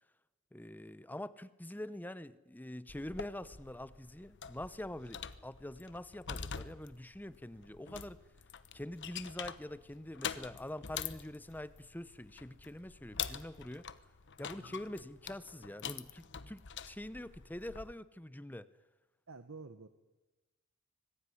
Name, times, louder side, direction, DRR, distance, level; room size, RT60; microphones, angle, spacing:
voice 1, 0.5-8.2 8.7-13.9 14.4-18.7, left 1 dB, 10° left, 0.8 m, -45 dB
sound 1, 2.9-17.9, left 7 dB, 55° left, 1.1 m, -46 dB
voice 2, 19.3-19.9, right 4 dB, 75° right, 1.3 m, -50 dB
25.5 x 21.0 x 9.9 m
head